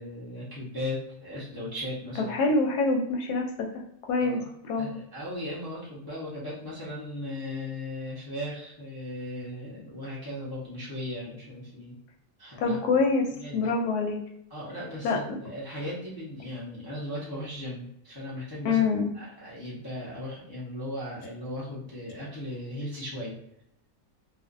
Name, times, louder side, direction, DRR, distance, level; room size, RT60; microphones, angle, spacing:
voice 1, 0.0-2.3 4.2-4.5 4.8-11.9 12.4-12.8 13.4-13.6 14.5-18.8 19.1-23.3, left 1 dB, 35° left, -7 dB, 0.3 m, -37 dB
voice 2, 2.3-3.8 4.1-5.0 12.6-14.2 15.0-15.2 18.6-19.1, left 3 dB, 85° left, 1 dB, 1.1 m, -26 dB
2.5 x 2.4 x 2.5 m, 0.77 s
omnidirectional pair, 1.6 m